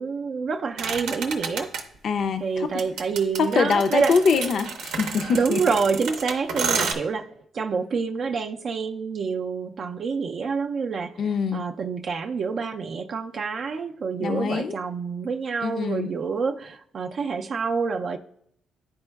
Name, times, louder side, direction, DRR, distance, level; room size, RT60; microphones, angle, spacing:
voice 1, 0.0-1.7 2.4-4.2 5.3-7.3 7.5-11.2 11.5-18.2, right 5 dB, 55° right, 0.3 m, -27 dB
sound 1, 0.8-1.8 2.8-6.9, right 5 dB, 85° right, 0.7 m, -30 dB
voice 2, 2.0-2.8 3.5-5.6 11.2-11.7 14.2-14.8 15.6-16.1, left 5 dB, 60° left, 0.4 m, -24 dB
10.5 x 4.3 x 2.2 m
cardioid pair, 90°, 0 cm